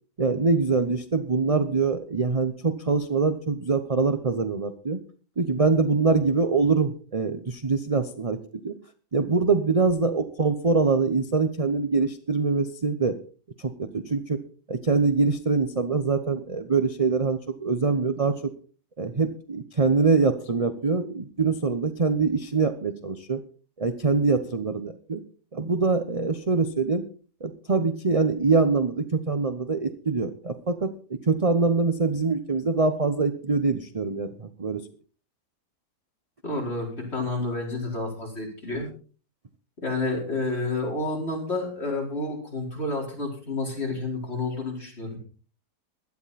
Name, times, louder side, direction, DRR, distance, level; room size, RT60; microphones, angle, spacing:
voice 1, 0.2-5.0 5.4-8.4 8.6-8.7 9.1-13.1 13.6-14.4 14.7-18.4 19.0-23.4 23.8-25.2 25.5-27.0 27.4-34.8, right 4 dB, 30° right, 9 dB, 0.7 m, -24 dB
voice 2, 36.4-38.9 39.8-45.2, left 2 dB, 40° left, -1 dB, 4.9 m, -30 dB
16.5 x 12.0 x 4.2 m, 0.39 s
omnidirectional pair, 1.7 m